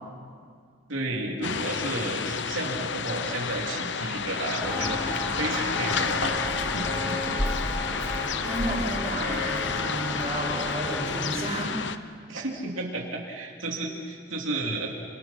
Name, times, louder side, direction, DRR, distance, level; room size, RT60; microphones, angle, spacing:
voice 1, 0.9-7.3 9.2-9.6 12.3-14.9, right 2 dB, 90° right, -1 dB, 3.1 m, -32 dB
sound 1, 1.4-12.0, left 6 dB, 65° left, 0.9 m, -31 dB
Walk footsteps, 4.6-11.3, left 1 dB, 15° left, 3.1 m, -33 dB
voice 2, 8.4-11.7, right 1 dB, 30° right, -2 dB, 6.6 m, -32 dB
27.5 x 27.0 x 5.8 m, 2.1 s
head